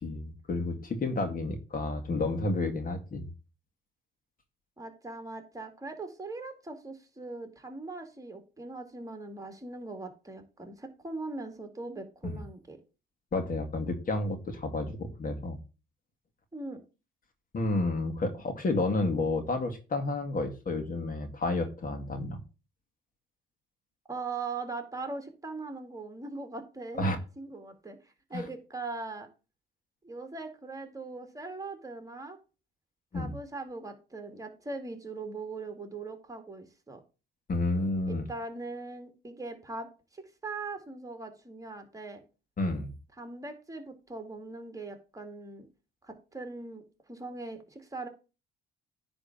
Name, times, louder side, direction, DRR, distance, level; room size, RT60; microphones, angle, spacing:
voice 1, 0.0-3.3 12.2-12.4 13.3-15.6 17.5-22.4 27.0-27.2 28.3-28.4 33.1-33.3 37.5-38.3 42.6-42.9, left 2 dB, 45° left, 5 dB, 1.9 m, -30 dB
voice 2, 4.8-12.8 16.5-16.8 24.1-29.3 30.0-32.4 33.1-37.0 38.1-39.9 40.1-42.2 43.2-45.7 46.0-46.8 47.1-48.1, right 3 dB, 15° right, 5 dB, 2.2 m, -40 dB
10.0 x 3.5 x 7.1 m, 0.32 s
cardioid pair, 90°, 20 cm